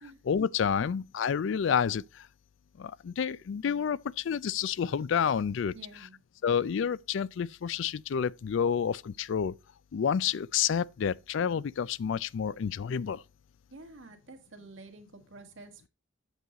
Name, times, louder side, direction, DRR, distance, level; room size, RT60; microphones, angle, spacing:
voice 1, 0.2-2.3 2.8-5.7 6.4-9.6 9.9-13.2, left 7 dB, 65° left, 0.4 m, -29 dB
voice 2, 5.7-6.2 13.7-15.9, right 2 dB, 65° right, 1.7 m, -49 dB
8.1 x 6.4 x 4.0 m
head